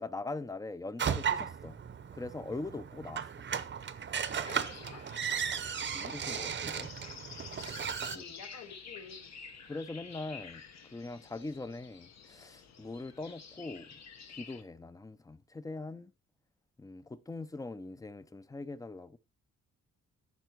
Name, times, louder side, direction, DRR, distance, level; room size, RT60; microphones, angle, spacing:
voice 1, 0.0-1.8 2.1-3.2 5.9-6.9 8.1-8.2 9.7-10.6 10.9-14.0 14.3-16.1 16.8-19.2, left 3 dB, 10° left, 0.5 m, -42 dB
sound 1, 1.0-8.2, right 7 dB, 35° right, 0.7 m, -36 dB
voice 2, 4.4-5.0 8.1-9.3, left 5 dB, 80° left, 3.3 m, -50 dB
sound 2, 4.4-14.6, left 6 dB, 60° left, 1.2 m, -50 dB
13.5 x 5.8 x 4.6 m
wide cardioid pair, 180°, 31 cm